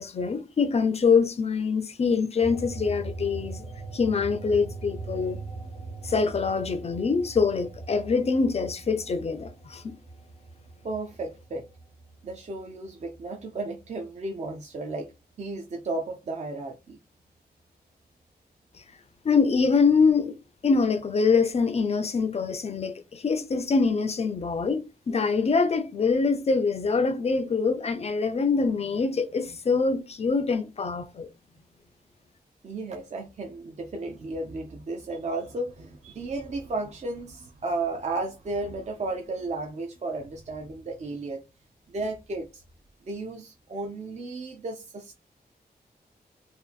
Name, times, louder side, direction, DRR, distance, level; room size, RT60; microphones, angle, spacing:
voice 1, 0.0-3.6 3.9-5.4 6.0-9.9 19.2-20.4 20.6-31.3, left 5 dB, 40° left, 0.4 m, -24 dB
sound 1, 2.4-13.3 13.7-15.1, right 3 dB, 85° right, 1.0 m, -41 dB
voice 2, 10.8-11.7 12.2-15.1 15.4-17.0 32.6-41.4 41.9-42.6 43.1-45.2, right 2 dB, 40° right, 0.4 m, -34 dB
2.6 x 2.5 x 2.4 m
wide cardioid pair, 140°, 17 cm